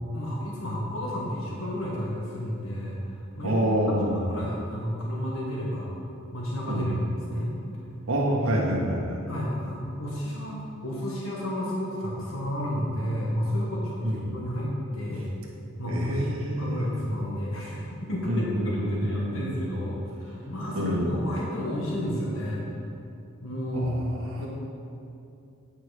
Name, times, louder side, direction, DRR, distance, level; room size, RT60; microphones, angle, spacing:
voice 1, 0.1-3.1 3.4-3.5 3.9-5.9 6.3-7.5 8.5-8.9 9.3-15.3 15.8-22.7 23.4-24.1 24.4-24.5, equal, 75° left, -4 dB, 1.4 m, -31 dB
voice 2, 3.4-4.2 6.7-6.9 8.1-9.2 14.0-14.2 15.9-16.8 18.3-19.7 20.7-21.1 23.7-24.4, equal, 75° right, -2 dB, 1.4 m, -27 dB
9.0 x 5.6 x 4.9 m, 2.6 s
head